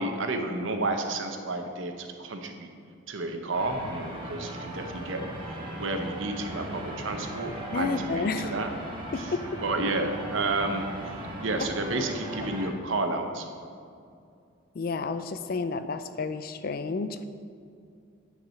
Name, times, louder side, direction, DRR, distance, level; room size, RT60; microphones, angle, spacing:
voice 1, 0.0-2.7 3.1-8.7 9.2-9.3 9.6-10.9 11.4-13.5, right 2 dB, 70° right, 5 dB, 0.8 m, -31 dB
sound 1, 3.5-12.7, right 1 dB, 25° right, 1.2 m, -38 dB
voice 2, 7.7-8.5 9.1-9.6 14.8-17.2, left 4 dB, 45° left, 11 dB, 0.4 m, -31 dB
9.1 x 4.7 x 5.7 m, 2.4 s
head